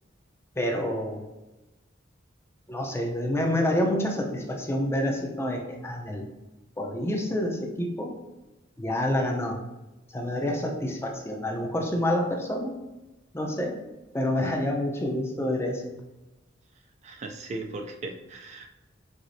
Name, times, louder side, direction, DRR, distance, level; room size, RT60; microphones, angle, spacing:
voice 1, 0.6-1.2 2.7-6.3 6.8-8.1 8.8-9.6 10.1-12.8 13.3-13.8 14.1-15.9, left 1 dB, 15° left, 1 dB, 0.6 m, -28 dB
voice 2, 17.0-18.7, right 2 dB, 35° right, 4 dB, 0.3 m, -37 dB
4.9 x 3.8 x 2.6 m, 1.0 s
head